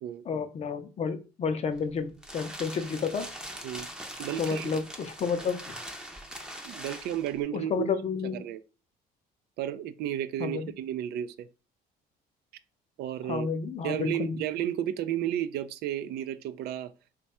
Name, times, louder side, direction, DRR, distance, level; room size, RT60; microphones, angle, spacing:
voice 1, 0.3-3.3 4.4-5.8 7.5-8.4 10.4-10.7 13.3-14.4, left 5 dB, 40° left, 0.5 m, -31 dB
sound 1, 1.7-7.4, right 1 dB, 5° right, 0.6 m, -42 dB
voice 2, 4.2-4.7 6.6-7.9 8.3-8.6 9.6-11.5 13.0-13.5 13.8-16.9, right 11 dB, 75° right, 0.4 m, -32 dB
3.3 x 2.3 x 4.1 m
cardioid pair, 110°, 17 cm